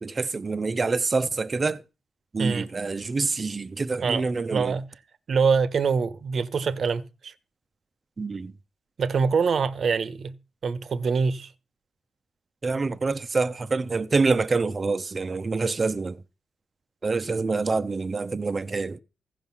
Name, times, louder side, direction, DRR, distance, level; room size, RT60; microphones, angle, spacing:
voice 1, 0.0-1.8 2.3-4.7 8.2-8.5 12.6-16.2 17.0-19.0, right 4 dB, 40° right, 0.9 m, -26 dB
voice 2, 4.0-4.8 5.3-7.3 9.0-10.3 10.6-11.5, right 5 dB, 60° right, 1.2 m, -24 dB
15.0 x 5.1 x 7.3 m
supercardioid pair, 55°, 0 cm